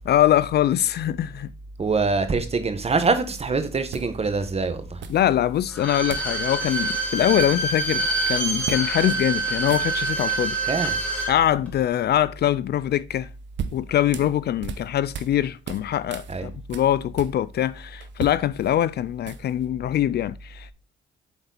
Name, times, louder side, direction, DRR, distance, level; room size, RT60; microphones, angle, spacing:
voice 1, 0.0-1.5 5.1-10.6 11.3-13.3 13.7-20.7, left 11 dB, 55° left, 0.4 m, -23 dB
voice 2, 1.8-5.0 10.7-10.9 16.3-16.5, right 4 dB, 30° right, 1.2 m, -24 dB
sound 1, 3.2-3.4 3.9-4.5 5.0-5.6 6.1-6.4 6.6-6.8 7.1-8.0 8.6-8.9 9.2-9.3 9.6-10.3 13.1-15.4 15.6-17.7 18.0-19.7, right 8 dB, 65° right, 0.8 m, -37 dB
Bowed string instrument, 5.7-11.3 11.7-11.8, right 3 dB, 5° left, 2.2 m, -26 dB
8.1 x 4.0 x 3.9 m
cardioid pair, 90°, 20 cm